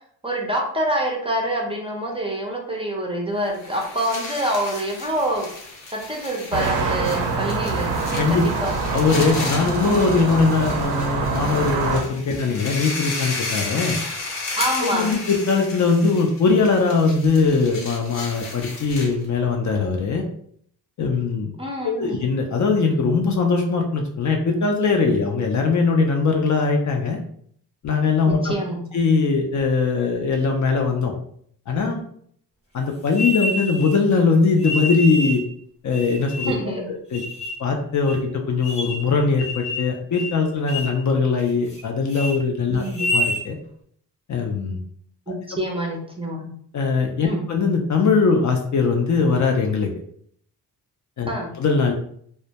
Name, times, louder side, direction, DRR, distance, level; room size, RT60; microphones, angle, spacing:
voice 1, 0.2-5.5 5.9-7.9 8.3-8.7 14.6-15.1 21.6-22.2 28.3-28.8 36.5-36.9 42.7-43.1 45.3-46.5 47.2-47.4 51.3-51.5, right 1 dB, 15° right, -1 dB, 0.5 m, -26 dB
sound 1, 3.5-19.3, left 3 dB, 85° left, 0.9 m, -33 dB
sound 2, 6.5-12.0, right 4 dB, 75° right, 0.5 m, -25 dB
voice 2, 8.2-8.7 8.9-14.0 14.8-20.2 21.0-21.5 21.8-27.2 27.8-28.5 28.9-31.1 31.7-32.0 32.7-35.4 35.8-36.8 37.1-37.2 37.6-42.8 43.1-43.6 44.3-44.8 46.7-49.9 51.2-51.3 51.6-51.9, left 4 dB, 45° left, 2 dB, 0.4 m, -21 dB
sound 3, 33.1-34.0 34.6-35.4 35.9-36.7 37.1-37.6 38.1-38.2 38.6-39.1 39.4-39.9 40.2-40.4 40.7-41.0 41.4-41.8 42.1-42.3 42.8-43.4, left 1 dB, 15° left, 0.7 m, -27 dB
2.1 x 2.1 x 2.7 m, 0.64 s
cardioid pair, 95°, 41 cm